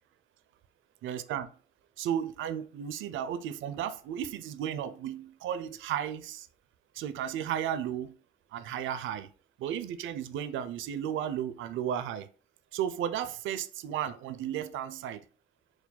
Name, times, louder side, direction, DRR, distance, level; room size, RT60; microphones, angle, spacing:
voice 1, 1.0-1.5 2.0-6.5 7.0-8.1 8.5-9.3 9.6-12.3 12.7-15.2, right 9 dB, 80° right, 0.4 m, -34 dB
4.5 x 2.2 x 4.0 m
cardioid pair, 90°, 20 cm